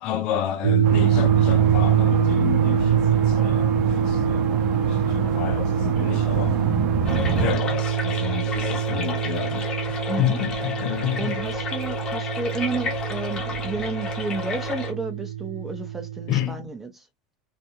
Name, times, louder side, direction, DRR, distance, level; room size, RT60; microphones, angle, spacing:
voice 1, 0.0-6.6 7.3-11.4 16.3-16.7, left 11 dB, 55° left, 0.4 m, -30 dB
sound 1, 0.6-16.5, right 10 dB, 80° right, 0.3 m, -24 dB
sound 2, 0.8-7.6, right 4 dB, 50° right, 0.7 m, -26 dB
sound 3, 7.0-14.9, left 5 dB, 35° left, 0.9 m, -32 dB
voice 2, 10.1-10.4 11.2-16.9, right 3 dB, 15° right, 0.7 m, -31 dB
2.5 x 2.2 x 2.9 m
hypercardioid pair, 85°, 2 cm